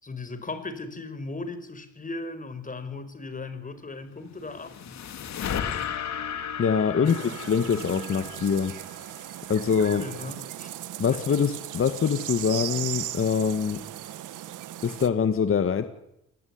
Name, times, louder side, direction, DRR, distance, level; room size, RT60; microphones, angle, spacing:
voice 1, 0.0-4.7 7.0-7.4 10.0-10.7 11.1-11.4, left 3 dB, 25° left, 11 dB, 5.5 m, -37 dB
sound 1, 4.2-9.6, left 8 dB, 65° left, 3.1 m, -35 dB
voice 2, 6.6-8.7 9.5-10.0 11.0-13.8 14.8-15.9, left 6 dB, 45° left, 8 dB, 2.0 m, -24 dB
sound 2, 7.0-15.1, right 13 dB, 85° right, 1.7 m, -37 dB
28.0 x 19.5 x 9.8 m, 0.84 s
cardioid pair, 90°, 30 cm